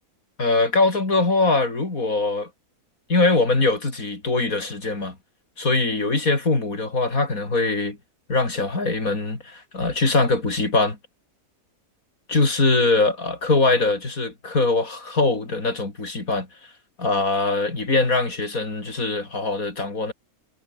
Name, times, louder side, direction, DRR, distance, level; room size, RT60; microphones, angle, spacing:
voice 1, 0.4-2.5 3.1-5.2 5.6-8.0 8.3-11.0 12.3-16.5 17.0-20.1, left 3 dB, 65° left, 4.9 m, -22 dB
omnidirectional pair, 1.6 m